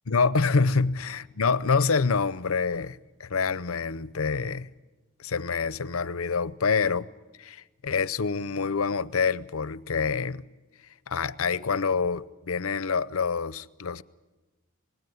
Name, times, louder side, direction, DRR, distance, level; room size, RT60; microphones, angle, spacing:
voice 1, 0.1-4.7 5.2-7.1 7.4-10.4 11.1-14.0, left 5 dB, 85° left, 0.7 m, -26 dB
27.0 x 20.0 x 9.4 m
head